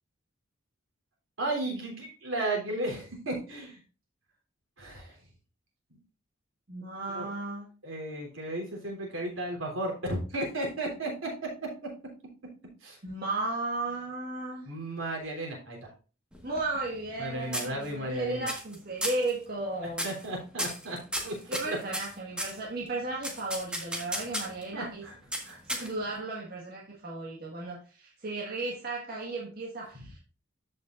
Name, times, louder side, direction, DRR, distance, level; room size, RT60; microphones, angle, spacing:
voice 1, 1.4-3.8 4.8-5.2 7.1-7.3 7.8-11.7 12.8-13.0 14.6-15.9 17.2-18.5 20.0-21.0 21.2-21.4 21.7-21.8 24.4-25.1 25.4-25.9, right 1 dB, 85° right, -1 dB, 3.4 m, -34 dB
voice 2, 6.7-7.7 13.0-14.7 16.4-20.1 21.5-25.0 25.7-30.2, right 2 dB, 50° right, -3 dB, 1.6 m, -35 dB
sound 1, 16.3-17.2 17.5-18.1 18.5-18.8 19.0-19.3 19.9-20.3 20.6-22.6 23.2-24.6 25.3-26.2, equal, 5° right, 1.5 m, -34 dB
13.5 x 5.6 x 2.5 m, 0.36 s
head